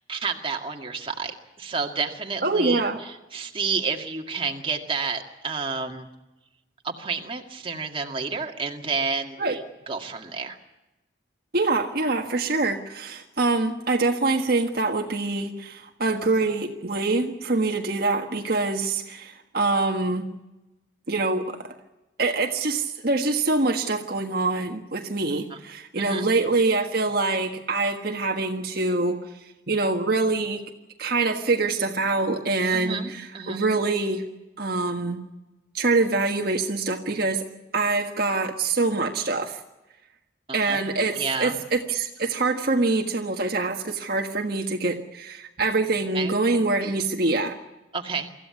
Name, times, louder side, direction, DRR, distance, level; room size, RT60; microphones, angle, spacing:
voice 1, 0.1-6.1 6.8-9.6 9.9-10.6 25.5-25.6 26.0-26.3 32.7-33.7 40.5-40.8 41.2-41.6 46.1-46.3 47.9-48.3, right 5 dB, 30° right, 2 dB, 2.0 m, -30 dB
voice 2, 2.4-3.0 9.4-9.6 11.5-20.2 21.1-21.7 22.2-30.6 31.0-34.2 34.6-35.2 35.7-37.4 37.7-39.6 40.5-47.6, right 3 dB, 50° right, 3 dB, 1.5 m, -25 dB
25.0 x 15.0 x 9.6 m, 1.0 s
head